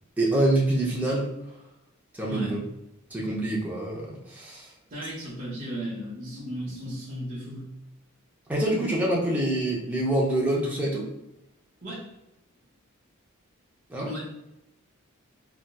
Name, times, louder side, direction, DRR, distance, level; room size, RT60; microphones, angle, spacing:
voice 1, 0.2-1.3 2.2-2.6 3.1-4.7 8.5-11.1 13.9-14.1, right 1 dB, 10° right, -4 dB, 0.5 m, -26 dB
voice 2, 2.3-2.6 4.9-7.6 11.8-12.1 14.0-14.3, equal, 40° right, -9 dB, 0.9 m, -35 dB
4.0 x 2.2 x 2.2 m, 0.88 s
head